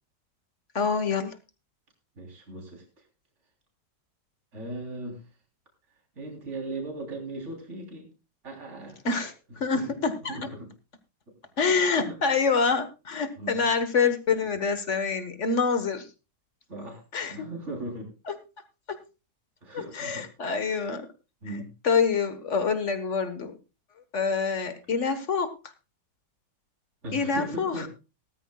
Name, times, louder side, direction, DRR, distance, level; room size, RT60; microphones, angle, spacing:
voice 1, 0.7-1.4 9.0-9.3 9.6-10.4 11.6-16.1 17.1-17.3 18.3-18.4 19.7-21.1 21.8-23.5 24.1-25.5 27.1-27.9, left 5 dB, 45° left, 10 dB, 1.5 m, -26 dB
voice 2, 2.2-3.0 4.5-5.3 6.2-8.1 8.4-9.3 9.7-10.0 10.3-10.7 11.9-12.2 13.4-13.6 16.7-17.0 17.3-18.1 19.6-20.3 20.6-20.9 21.4-21.7 27.0-27.9, right 2 dB, 40° right, 2 dB, 3.7 m, -38 dB
18.0 x 13.5 x 2.3 m, 0.30 s
omnidirectional pair, 1.9 m